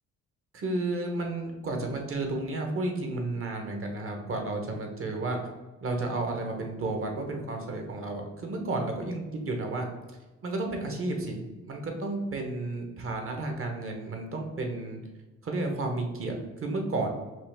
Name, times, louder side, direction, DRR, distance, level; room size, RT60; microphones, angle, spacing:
voice 1, 0.5-5.4 5.8-9.8 10.4-15.0 15.4-17.1, right 2 dB, 45° right, 3 dB, 1.2 m, -32 dB
5.7 x 2.6 x 3.5 m, 1.2 s
cardioid pair, 90°, 30 cm